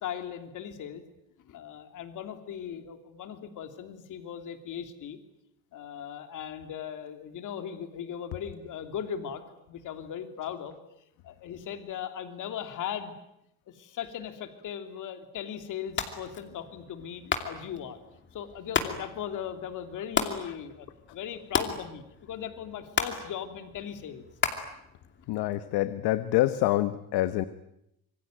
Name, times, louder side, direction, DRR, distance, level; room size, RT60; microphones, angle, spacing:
voice 1, 0.0-1.0 1.4-5.2 5.7-9.4 9.7-10.7 11.2-13.1 13.7-18.0 18.3-20.9 21.1-24.3, left 9 dB, 55° left, 8 dB, 3.1 m, -38 dB
sound 1, 15.9-25.6, left 6 dB, 30° left, 2.7 m, -35 dB
voice 2, 25.3-27.4, left 15 dB, 90° left, 12 dB, 1.2 m, -26 dB
26.5 x 23.5 x 9.2 m, 0.80 s
cardioid pair, 165°, 38 cm